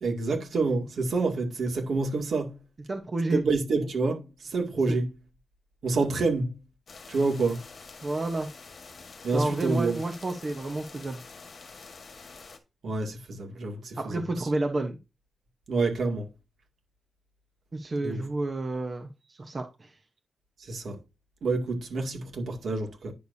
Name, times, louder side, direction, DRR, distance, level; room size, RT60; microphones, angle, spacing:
voice 1, 0.0-2.6 3.3-5.1 5.8-6.6 7.1-7.6 9.2-10.0 12.8-14.5 15.7-16.3 18.0-18.2 20.6-21.0 21.4-23.1, right 3 dB, 70° right, 2.2 m, -28 dB
voice 2, 2.9-3.4 4.9-5.0 8.0-8.5 9.3-11.2 14.0-15.0 17.7-19.1 19.4-19.9, right 2 dB, 35° right, 0.9 m, -30 dB
sound 1, 6.9-12.6, left 4 dB, 50° left, 1.4 m, -47 dB
10.0 x 6.7 x 2.7 m
wide cardioid pair, 160°, 0 cm